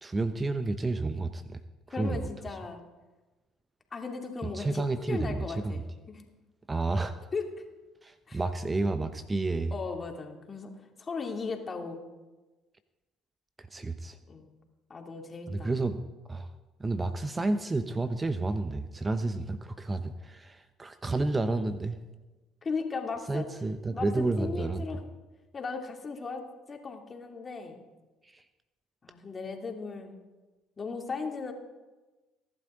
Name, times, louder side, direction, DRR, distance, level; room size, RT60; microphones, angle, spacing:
voice 1, 0.0-1.6 2.0-2.3 4.4-5.7 6.7-7.3 8.0-9.7 13.6-14.2 15.5-16.0 16.3-16.5 16.8-22.0 23.3-24.8 28.2-28.4, right 2 dB, 20° right, 11 dB, 0.9 m, -30 dB
voice 2, 1.9-2.8 3.9-6.2 7.3-7.5 8.3-8.4 9.7-12.0 14.3-14.5 14.9-15.7 22.6-23.4 23.9-25.0 25.5-27.8 29.0-30.2 30.8-31.5, left 4 dB, 30° left, 3 dB, 2.8 m, -37 dB
23.0 x 12.0 x 3.9 m, 1.2 s
figure-of-eight pair, 55°, 0 cm